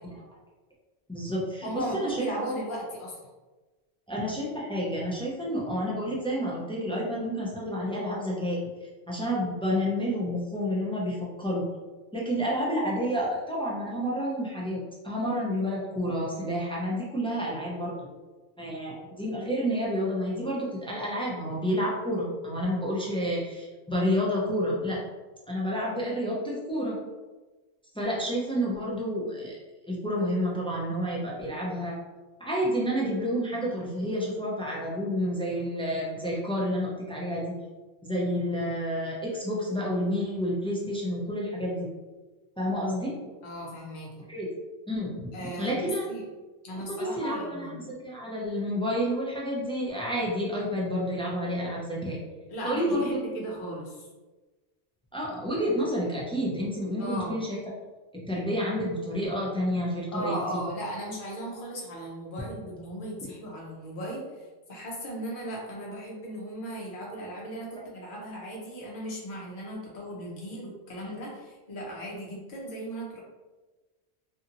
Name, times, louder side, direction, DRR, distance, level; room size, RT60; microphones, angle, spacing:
voice 1, 1.1-2.3 4.1-11.6 12.1-18.0 18.6-25.0 25.5-27.0 27.9-29.6 29.9-32.0 32.4-37.5 38.1-41.9 42.6-43.2 44.3-44.5 44.9-45.1 45.6-46.0 46.7-52.2 52.6-53.2 55.1-57.6 58.2-60.3, equal, 10° left, -5 dB, 0.3 m, -29 dB
voice 2, 1.6-3.2 43.4-44.3 45.3-46.3 46.6-48.0 52.5-54.1 57.0-57.3 60.1-73.2, right 1 dB, 55° left, -3 dB, 0.9 m, -37 dB
2.7 x 2.7 x 2.6 m, 1.2 s
omnidirectional pair, 1.1 m